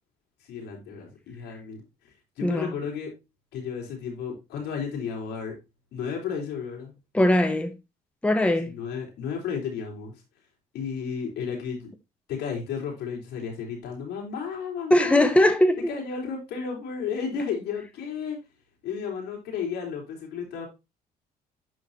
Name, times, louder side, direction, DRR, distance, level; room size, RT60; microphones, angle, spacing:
voice 1, 0.5-1.8 2.4-3.1 3.5-5.6 5.9-6.9 8.7-10.1 10.7-11.9 12.3-15.3 15.9-18.4 18.8-20.7, left 6 dB, 80° left, 4.0 m, -33 dB
voice 2, 2.4-2.7 7.1-7.7 8.2-8.7 14.9-15.9, left 1 dB, 5° left, 1.0 m, -20 dB
11.5 x 4.8 x 2.7 m
cardioid pair, 110°, 17 cm